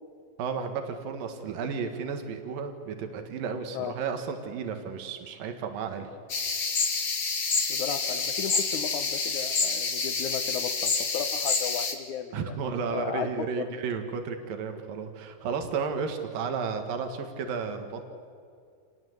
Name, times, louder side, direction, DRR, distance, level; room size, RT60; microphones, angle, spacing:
voice 1, 0.4-6.1 12.3-18.1, right 5 dB, 85° right, 6 dB, 3.4 m, -33 dB
sound 1, 6.3-11.9, left 4 dB, 35° left, 2.3 m, -28 dB
voice 2, 7.7-12.6 12.9-13.8, left 8 dB, 70° left, 9 dB, 2.2 m, -35 dB
28.5 x 21.0 x 8.0 m, 2.3 s
omnidirectional pair, 3.9 m